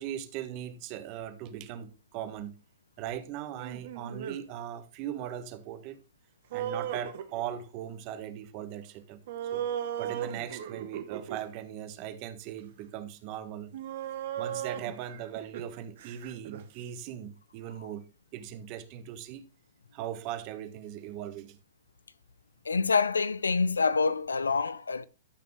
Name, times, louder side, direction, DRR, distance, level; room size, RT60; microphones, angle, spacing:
voice 1, 0.0-2.5 3.0-6.0 6.5-9.2 9.5-9.6 10.0-13.7 14.4-18.0 18.3-19.4 19.9-21.6, right 10 dB, 45° right, 1.4 m, -39 dB
sound 1, 3.6-4.4 6.5-7.7 9.3-11.4 12.6-12.7 13.7-16.6, right 10 dB, 60° right, 1.2 m, -36 dB
voice 2, 22.6-25.0, left 4 dB, 90° left, 0.6 m, -26 dB
13.5 x 5.9 x 3.3 m
hypercardioid pair, 115°, 0 cm